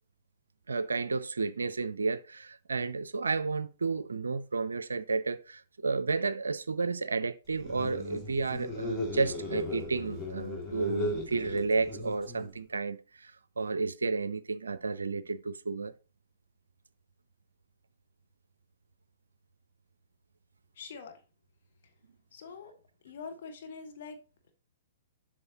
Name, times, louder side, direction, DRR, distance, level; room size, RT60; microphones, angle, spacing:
voice 1, 0.7-15.9, right 4 dB, 75° right, 0.4 m, -32 dB
sound 1, 7.5-12.6, left 2 dB, 20° left, 2.4 m, -37 dB
voice 2, 20.7-21.1 22.3-22.7 23.0-24.2, left 5 dB, 55° left, 1.5 m, -44 dB
7.7 x 6.1 x 2.9 m
figure-of-eight pair, 115°, 0 cm